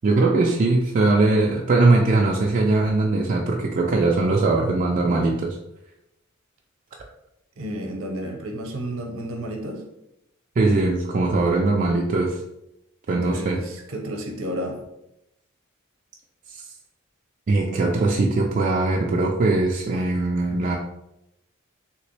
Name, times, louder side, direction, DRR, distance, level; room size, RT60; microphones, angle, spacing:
voice 1, 0.0-5.6 10.6-12.4 13.1-13.6 16.5-16.6 17.5-20.8, right 2 dB, 40° right, -1 dB, 0.4 m, -20 dB
voice 2, 7.6-9.8 13.1-14.8, equal, 70° right, 2 dB, 0.8 m, -31 dB
3.2 x 2.9 x 3.2 m, 0.85 s
head